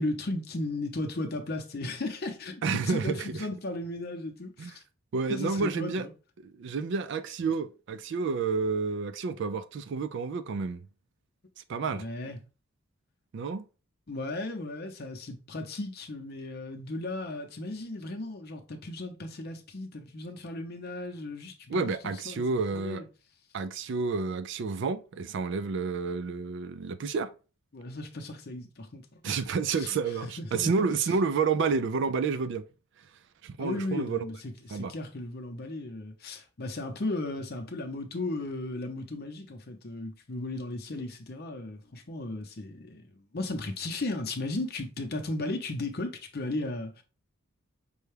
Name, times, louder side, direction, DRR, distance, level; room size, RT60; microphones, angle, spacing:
voice 1, 0.0-4.8 5.3-6.1 11.9-12.4 14.1-22.4 22.7-23.1 27.7-29.4 29.8-30.0 30.4-31.0 33.6-34.4 34.7-47.0, left 2 dB, 45° left, 0.7 m, -35 dB
voice 2, 2.6-3.5 4.6-4.7 5.1-6.1 6.4-10.8 11.7-12.0 13.3-13.7 21.7-23.0 23.5-27.3 29.2-32.6 33.4-34.2 34.7-34.9, right 4 dB, 55° right, 0.3 m, -30 dB
5.4 x 2.3 x 3.2 m
head